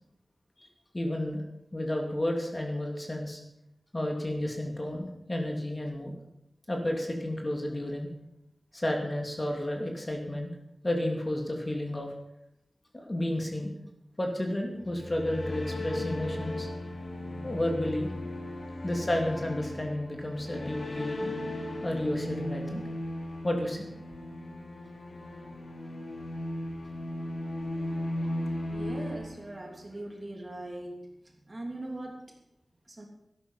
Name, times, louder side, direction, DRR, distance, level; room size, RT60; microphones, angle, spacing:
voice 1, 0.9-1.4 1.7-3.4 3.9-6.1 6.7-8.1 8.7-10.5 10.8-12.1 12.9-13.7 14.2-16.7 17.4-18.1 18.8-21.4 21.8-22.8 23.4-23.9, left 1 dB, 30° left, 1 dB, 2.7 m, -31 dB
sound 1, 14.8-30.0, left 1 dB, 75° left, 2.6 m, -36 dB
voice 2, 28.7-31.1 31.4-32.2 32.9-33.1, right 1 dB, 35° right, 1 dB, 2.8 m, -40 dB
13.0 x 11.0 x 5.7 m, 0.83 s
wide cardioid pair, 75°, 0 cm